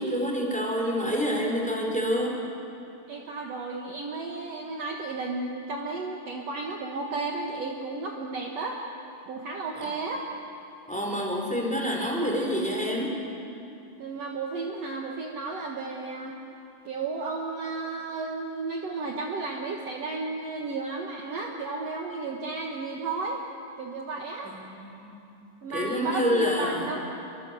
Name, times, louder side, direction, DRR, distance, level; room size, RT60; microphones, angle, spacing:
voice 1, 0.0-2.4 9.7-9.8 10.9-13.2 24.4-25.2 25.7-26.9, equal, ahead, -1 dB, 4.4 m, -27 dB
voice 2, 3.1-8.8 9.3-10.3 14.0-16.3 16.9-23.4 23.8-24.5 25.6-27.1, right 3 dB, 55° right, 0 dB, 2.4 m, -33 dB
27.0 x 25.0 x 7.8 m, 2.7 s
omnidirectional pair, 3.8 m